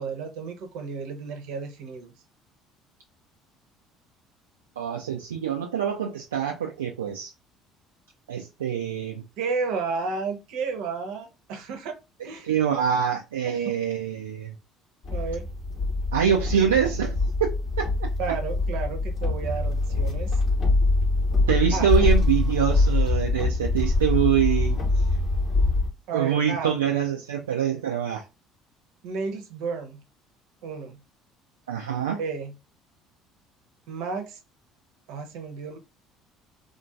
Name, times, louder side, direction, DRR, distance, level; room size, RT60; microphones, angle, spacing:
voice 1, 0.0-2.1 9.4-12.0 12.2-12.5 13.5-13.7 15.1-15.5 18.2-20.4 21.7-21.9 26.1-26.8 29.0-30.0 30.6-31.0 32.2-32.5 33.9-34.4 35.1-35.8, right 5 dB, 60° right, 6 dB, 0.8 m, -32 dB
voice 2, 4.8-7.3 8.3-9.2 12.4-14.5 16.1-18.1 21.5-25.0 26.1-28.2 31.7-32.2, right 9 dB, 75° right, 1 dB, 0.4 m, -25 dB
sound 1, 15.0-25.9, left 2 dB, 45° left, 0.9 m, -24 dB
3.6 x 2.6 x 2.3 m, 0.26 s
figure-of-eight pair, 55°, 0 cm